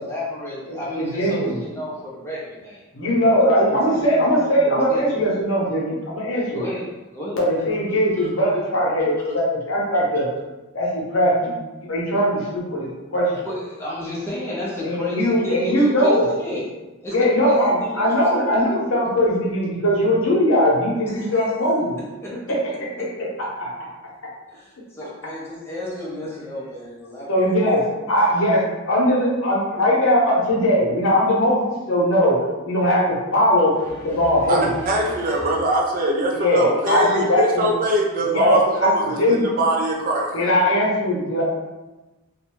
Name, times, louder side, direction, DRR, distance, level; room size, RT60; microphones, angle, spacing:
voice 1, 0.0-2.8 3.7-5.0 6.3-7.4 8.2-8.3 13.3-16.7 17.0-18.1 18.5-18.6 21.0-21.5 22.2-22.4 23.0-23.1 24.5-27.5 28.2-28.4 33.8-35.5, left 1 dB, 10° left, -6 dB, 0.5 m, -32 dB
voice 2, 0.7-1.6 2.9-6.7 7.4-10.3 10.7-11.6 11.9-13.3 14.8-16.2 17.1-22.0 22.5-22.6 23.4-23.7 27.3-33.7 34.0-34.7 36.3-37.7 38.3-39.4 40.3-41.4, equal, 65° left, -4 dB, 0.8 m, -20 dB
voice 3, 34.5-40.5, right 1 dB, 40° right, -1 dB, 0.4 m, -22 dB
2.5 x 2.2 x 3.0 m, 1.1 s
head